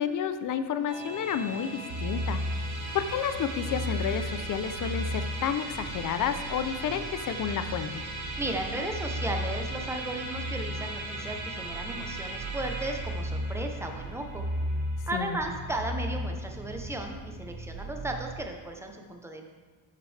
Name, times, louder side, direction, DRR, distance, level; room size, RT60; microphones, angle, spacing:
voice 1, 0.0-2.4 2.9-8.0 15.1-15.4, left 8 dB, 45° left, 11 dB, 0.4 m, -30 dB
Musical instrument, 0.9-16.4, right 2 dB, 35° right, 2.9 m, -40 dB
sound 1, 1.9-18.4, equal, 55° right, 1.0 m, -36 dB
voice 2, 8.4-14.5 15.1-19.5, right 1 dB, 5° right, 3 dB, 0.6 m, -35 dB
12.5 x 5.7 x 3.3 m, 1.4 s
cardioid pair, 175°, 49 cm